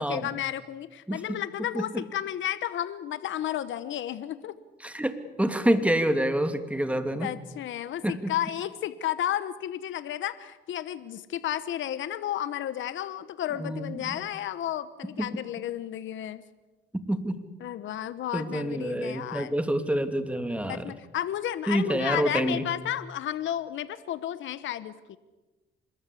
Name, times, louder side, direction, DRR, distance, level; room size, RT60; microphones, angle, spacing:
voice 1, 0.0-4.5 7.2-16.4 17.6-19.5 20.7-25.2, left 11 dB, 75° left, 14 dB, 1.1 m, -32 dB
voice 2, 4.8-7.3 8.0-8.2 13.6-14.0 15.2-15.3 17.1-17.4 18.3-20.8 21.7-22.7, right 1 dB, 5° right, 8 dB, 2.8 m, -27 dB
26.0 x 21.5 x 8.5 m, 1.2 s
cardioid pair, 90°, 20 cm